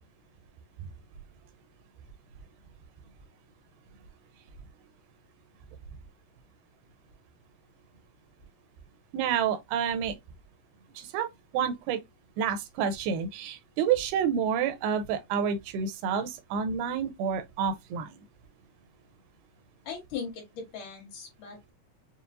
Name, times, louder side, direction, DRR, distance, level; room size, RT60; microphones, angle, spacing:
voice 1, 9.1-10.2 11.0-11.3 11.5-12.0 12.4-18.2, right 7 dB, 85° right, 2.6 m, -29 dB
voice 2, 19.9-21.7, left 6 dB, 60° left, 2.9 m, -39 dB
6.8 x 2.4 x 2.5 m
omnidirectional pair, 4.3 m